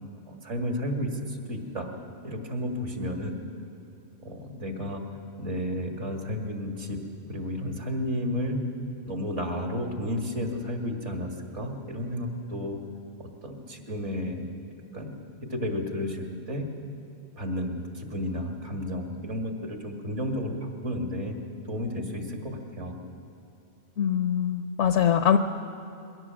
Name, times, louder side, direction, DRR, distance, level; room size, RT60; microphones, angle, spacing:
voice 1, 0.3-1.9 2.2-3.4 4.2-5.0 5.4-7.0 7.3-8.6 9.1-12.8 13.2-14.4 14.9-15.2 15.5-16.7 17.4-20.6 20.8-21.4 21.6-23.0, left 1 dB, 70° right, 3 dB, 2.5 m, -32 dB
voice 2, 24.0-25.4, left 9 dB, 75° left, 9 dB, 1.0 m, -23 dB
21.5 x 17.0 x 7.6 m, 2.8 s
omnidirectional pair, 1.2 m